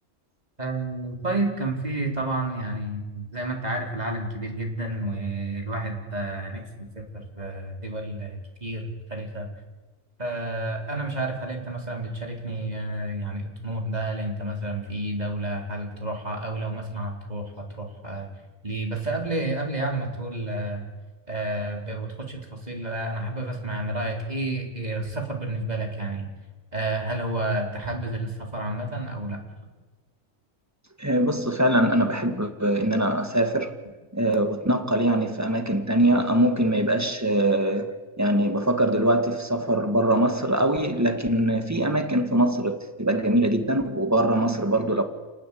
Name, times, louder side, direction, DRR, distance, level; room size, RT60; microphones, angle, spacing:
voice 1, 0.6-7.1 7.4-9.5 10.2-18.3 18.6-20.9 21.3-26.3 26.7-29.4, right 2 dB, 30° right, 4.5 m, -30 dB
voice 2, 31.0-33.7 34.1-45.0, right 1 dB, 10° right, 2.0 m, -23 dB
30.0 x 19.0 x 8.7 m
omnidirectional pair, 1.3 m